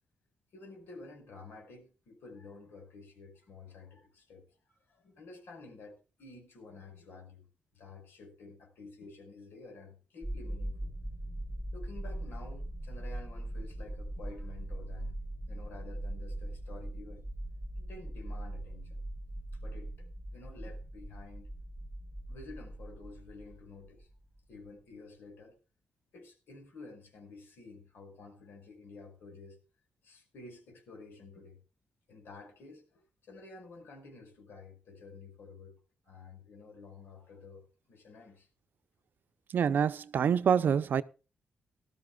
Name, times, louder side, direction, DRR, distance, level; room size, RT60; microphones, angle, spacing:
voice 1, 0.5-7.5 7.7-10.8 11.7-15.2 15.5-17.2 17.8-19.0 19.6-21.5 22.3-24.1 24.5-25.5 26.1-29.6 30.0-31.6 32.1-35.8 36.0-38.5, left 3 dB, 80° left, 5.3 m, -51 dB
sound 1, 10.2-24.4, right 1 dB, ahead, 1.6 m, -40 dB
voice 2, 39.5-41.0, right 7 dB, 65° right, 0.6 m, -26 dB
18.5 x 13.0 x 2.4 m
cardioid pair, 110°, 4 cm